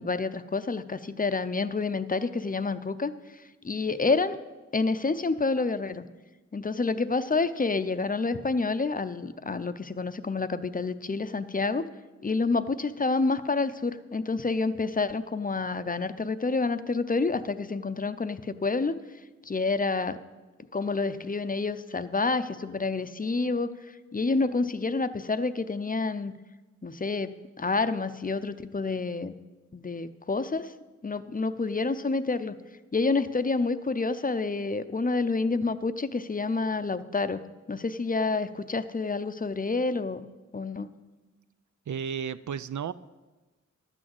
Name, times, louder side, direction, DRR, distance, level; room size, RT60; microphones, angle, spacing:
voice 1, 0.0-3.1 3.6-4.4 4.7-6.1 6.5-11.9 12.2-19.0 19.5-20.2 20.7-23.8 24.1-26.3 26.8-29.3 29.7-30.7 31.0-32.5 32.9-37.4 37.7-40.3 40.5-40.9, left 3 dB, 30° left, 12 dB, 0.5 m, -28 dB
voice 2, 41.9-42.9, right 7 dB, 75° right, 16 dB, 0.5 m, -33 dB
12.0 x 6.3 x 7.7 m, 1.2 s
wide cardioid pair, 80°, 29 cm